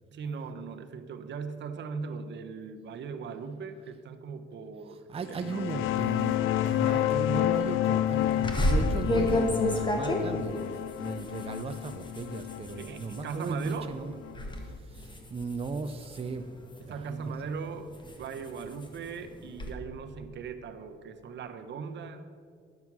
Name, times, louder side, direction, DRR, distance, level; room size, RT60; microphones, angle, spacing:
voice 1, 0.1-5.8 12.8-13.9 16.9-17.9 18.2-22.2, right 5 dB, 65° right, 8 dB, 0.9 m, -39 dB
voice 2, 5.1-14.2 14.6-16.5 16.9-17.2, right 4 dB, 30° right, 8 dB, 0.5 m, -37 dB
sound 1, 5.3-14.6, left 12 dB, 85° left, 0.5 m, -30 dB
sound 2, 8.4-13.8 14.2-14.6 15.0-17.0 17.5-19.7, left 1 dB, 25° left, 1.5 m, -31 dB
11.0 x 7.0 x 6.1 m, 2.3 s
cardioid pair, 90°, 20 cm